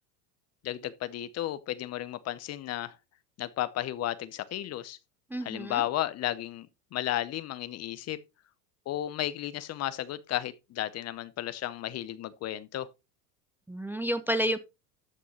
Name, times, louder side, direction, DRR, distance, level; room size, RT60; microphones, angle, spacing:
voice 1, 0.6-2.9 3.4-5.0 5.4-8.2 8.9-12.9, left 13 dB, 35° left, 0.7 m, -33 dB
voice 2, 5.3-5.8 13.7-14.6, equal, 5° right, 0.6 m, -30 dB
13.0 x 6.1 x 3.0 m
supercardioid pair, 110°, 47 cm